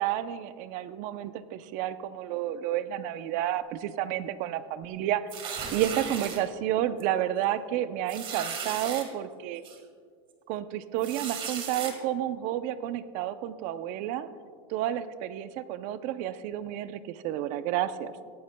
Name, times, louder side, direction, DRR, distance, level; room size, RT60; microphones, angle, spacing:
voice 1, 0.0-5.3 5.7-9.6 10.5-14.3 14.7-18.1, right 12 dB, 50° right, 13 dB, 0.6 m, -31 dB
sound 1, 5.3-6.4 7.0-7.2 7.4-7.5 8.1-9.0 9.6-9.8 11.0-11.9, right 6 dB, 35° right, 1.9 m, -36 dB
18.5 x 15.0 x 2.2 m, 2.1 s
supercardioid pair, 140°, 16 cm